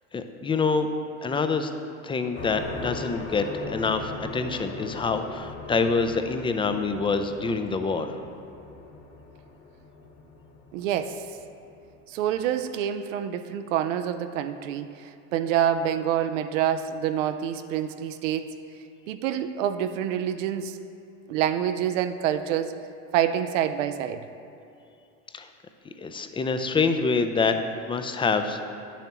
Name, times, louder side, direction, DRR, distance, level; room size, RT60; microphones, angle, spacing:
voice 1, 0.1-0.9 1.2-1.7 2.0-8.2 25.3-25.5 26.0-27.6 27.9-28.6, left 4 dB, 15° left, 7 dB, 0.4 m, -26 dB
sound 1, 2.3-12.5, left 3 dB, 40° left, 1.7 m, -40 dB
voice 2, 10.7-11.4 12.1-18.6 19.1-20.8 21.3-22.7 23.1-24.2, right 10 dB, 75° right, 9 dB, 0.5 m, -27 dB
9.8 x 7.1 x 3.0 m, 2.6 s
hypercardioid pair, 85°, 38 cm